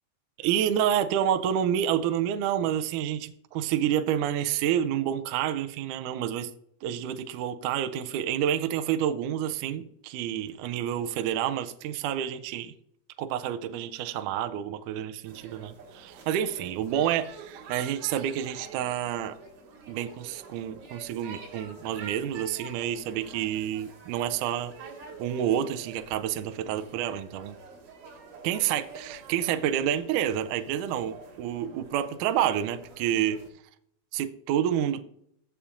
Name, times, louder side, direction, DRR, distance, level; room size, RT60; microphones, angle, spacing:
voice 1, 0.4-6.5 6.8-12.7 13.2-19.4 19.9-24.7 25.2-27.6 28.4-33.4 34.1-35.0, right 10 dB, 80° right, 8 dB, 1.9 m, -29 dB
sound 1, 15.2-33.5, right 4 dB, 65° right, 3.3 m, -47 dB
15.0 x 5.7 x 2.5 m, 0.68 s
omnidirectional pair, 4.1 m